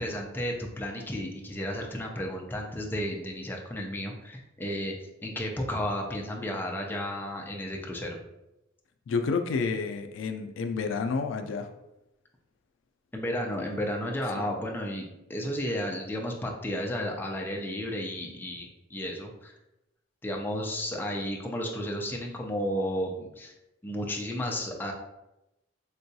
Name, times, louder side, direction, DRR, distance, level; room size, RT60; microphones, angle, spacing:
voice 1, 0.0-4.9 5.2-8.2 13.1-19.5 20.2-23.5 23.8-24.9, equal, 10° left, 0 dB, 0.4 m, -33 dB
voice 2, 9.1-11.7 14.4-14.5, left 4 dB, 90° left, 7 dB, 0.3 m, -30 dB
3.7 x 2.2 x 2.7 m, 0.92 s
head